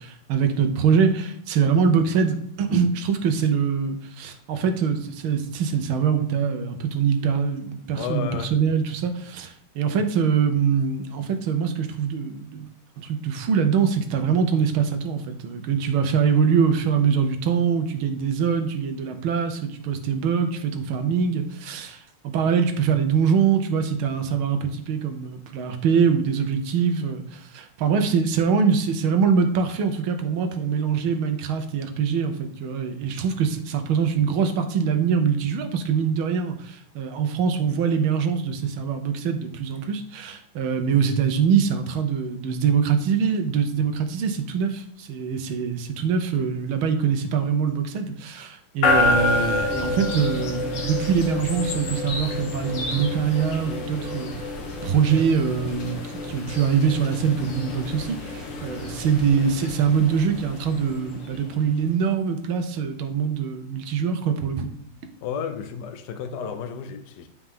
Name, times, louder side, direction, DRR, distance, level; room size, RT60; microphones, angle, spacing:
voice 1, 0.0-12.7 13.0-54.5 54.8-64.7, right 6 dB, 75° right, 1.6 m, -23 dB
voice 2, 7.9-8.5 65.2-67.3, left 7 dB, 65° left, 1.0 m, -32 dB
sound 1, 48.8-61.8, left 3 dB, 85° left, 2.3 m, -28 dB
10.0 x 4.7 x 3.6 m
omnidirectional pair, 2.4 m